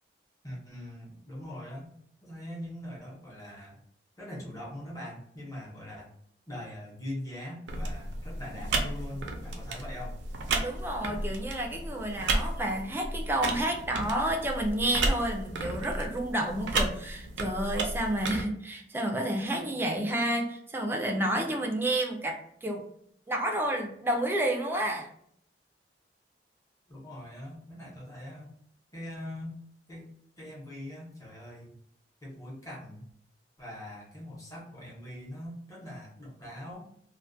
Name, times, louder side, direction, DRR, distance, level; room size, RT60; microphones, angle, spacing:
voice 1, 0.4-1.9 2.2-3.8 4.2-6.1 6.5-10.2 26.9-28.5 28.9-29.6 29.9-30.1 30.4-31.7 32.2-33.0 33.6-36.9, left 1 dB, 20° left, -3 dB, 0.8 m, -42 dB
sound 1, 7.7-18.4, right 2 dB, 90° right, 0.4 m, -33 dB
voice 2, 10.6-22.9 23.3-25.1, right 1 dB, 15° right, 2 dB, 0.3 m, -30 dB
2.3 x 2.1 x 2.5 m, 0.67 s
head